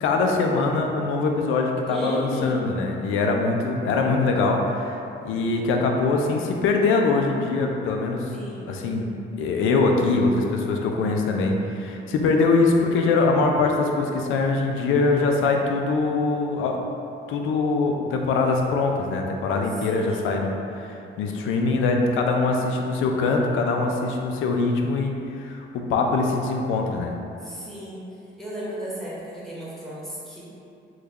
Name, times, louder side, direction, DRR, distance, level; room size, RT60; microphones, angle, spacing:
voice 1, 0.0-8.3 8.7-9.1 9.4-16.8 17.3-27.1, left 3 dB, 85° left, 2 dB, 0.4 m, -23 dB
voice 2, 1.9-2.6 8.3-8.7 19.9-20.4 27.4-28.0 28.4-30.4, equal, ahead, -9 dB, 1.1 m, -34 dB
3.1 x 2.2 x 3.5 m, 2.7 s
cardioid pair, 90°, 20 cm